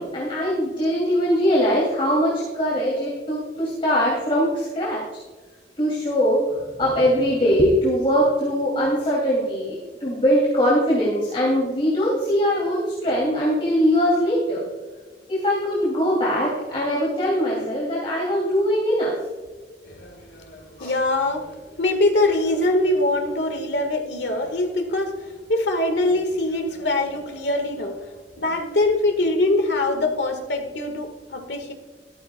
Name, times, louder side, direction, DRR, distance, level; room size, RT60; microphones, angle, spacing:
voice 1, 0.0-5.0 5.8-14.6 15.3-19.1 20.8-20.9, equal, 30° left, -5 dB, 2.8 m, -21 dB
voice 2, 19.8-25.1 25.5-28.0 28.4-31.7, left 2 dB, 85° left, 4 dB, 1.7 m, -23 dB
14.0 x 13.5 x 2.3 m, 1.3 s
head